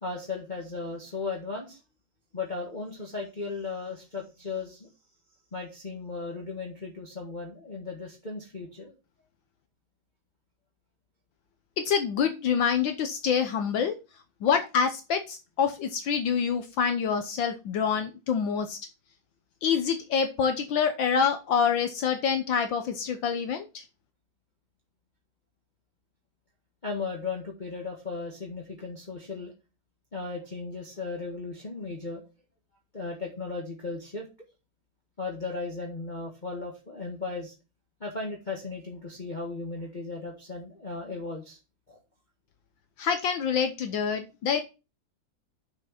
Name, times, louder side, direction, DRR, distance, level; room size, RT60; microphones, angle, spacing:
voice 1, 0.0-1.8 2.3-4.9 5.5-8.9 26.8-29.5 30.1-32.2 32.9-34.3 35.2-37.5 38.0-41.6 41.9-42.0, left 3 dB, 25° left, -1 dB, 1.6 m, -36 dB
voice 2, 11.8-14.0 14.4-18.8 19.6-23.8 43.0-44.6, left 6 dB, 70° left, 8 dB, 1.6 m, -26 dB
6.7 x 6.1 x 5.7 m, 0.29 s
omnidirectional pair, 2.2 m